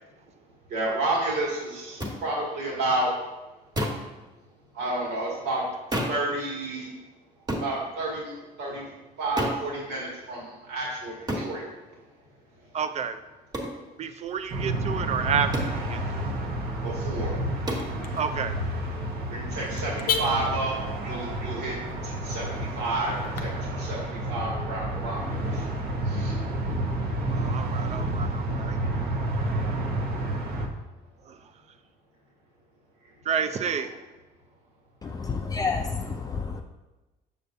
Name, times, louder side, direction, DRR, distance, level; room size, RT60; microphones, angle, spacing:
voice 1, 0.7-3.1 4.7-5.6 6.1-6.9 7.6-8.9 9.2-11.6 16.8-17.3 19.3-20.7 21.0-21.8 22.0-25.6 26.1-26.4 28.8-29.0 33.7-33.8, right 2 dB, 85° right, -4 dB, 2.1 m, -30 dB
sound 1, 2.0-2.2 3.7-4.1 5.9-6.3 7.5-7.7 9.4-9.7 11.3-11.5 13.5-13.8 15.5-15.8 17.7-17.9, equal, 25° right, 1.3 m, -29 dB
voice 2, 12.7-13.2 14.0-16.3 18.2-18.6 27.3-28.8 31.3-31.4 33.3-33.9, right 7 dB, 40° right, 10 dB, 0.5 m, -30 dB
Car / Alarm, 14.3-23.4, left 5 dB, 60° left, 0.7 m, -38 dB
sound 2, 14.5-30.7, right 1 dB, 65° right, 0.9 m, -30 dB
voice 3, 35.0-36.6, left 4 dB, 20° left, 3 dB, 0.4 m, -30 dB
6.7 x 6.6 x 2.7 m, 1.1 s
cardioid pair, 110°, 17 cm